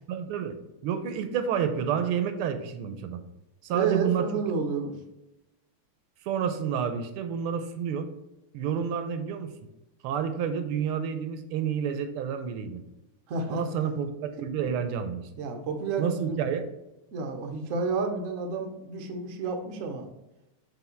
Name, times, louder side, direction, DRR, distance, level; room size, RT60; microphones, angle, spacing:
voice 1, 0.1-0.5 0.8-3.2 3.6-4.3 6.2-8.1 8.5-9.5 10.0-12.8 13.5-15.3 16.0-16.7, right 7 dB, 80° right, 9 dB, 1.5 m, -29 dB
voice 2, 3.7-5.0 13.3-13.6 15.4-16.4 17.1-20.1, right 4 dB, 60° right, 3 dB, 0.8 m, -30 dB
7.2 x 3.3 x 4.4 m, 0.94 s
omnidirectional pair, 2.4 m